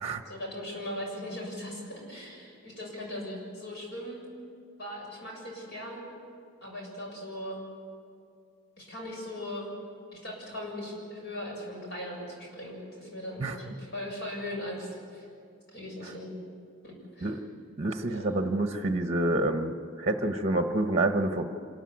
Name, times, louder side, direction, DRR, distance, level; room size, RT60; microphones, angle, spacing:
voice 1, 0.3-4.2 4.8-6.0 6.6-7.6 8.8-9.7 10.1-15.3 15.7-16.3 16.8-17.4 18.0-18.3, left 1 dB, 60° left, -1 dB, 7.2 m, -39 dB
voice 2, 17.8-21.5, right 2 dB, 35° right, 6 dB, 1.1 m, -28 dB
26.0 x 14.0 x 8.5 m, 2.4 s
head